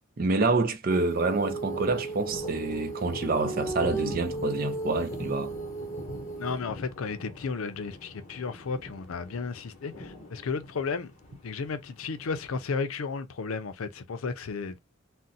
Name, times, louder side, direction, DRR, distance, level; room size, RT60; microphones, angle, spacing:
voice 1, 0.2-5.5, right 3 dB, 45° right, 0.4 m, -27 dB
Female singing, 0.9-6.6, right 3 dB, 15° left, 0.4 m, -35 dB
sound 1, 1.4-12.6, left 2 dB, 35° left, 0.8 m, -44 dB
voice 2, 6.4-11.1 11.4-14.9, left 4 dB, 85° left, 0.5 m, -33 dB
2.6 x 2.1 x 3.9 m
head